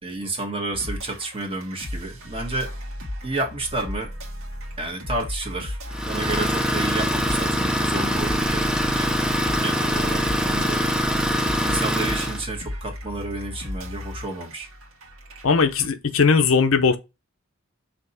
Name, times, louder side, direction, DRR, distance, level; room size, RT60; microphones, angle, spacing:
voice 1, 0.0-2.7 3.2-4.1 4.8-5.8 6.0-8.6 8.9-9.2 9.5-10.9 11.6-14.7, right 2 dB, 25° right, 1.4 m, -31 dB
sound 1, 0.7-15.9, left 1 dB, 70° right, 1.6 m, -35 dB
Idling, 5.9-12.4, equal, 5° right, 0.6 m, -23 dB
voice 2, 15.4-17.0, left 5 dB, 70° left, 0.7 m, -18 dB
5.9 x 2.9 x 5.5 m
head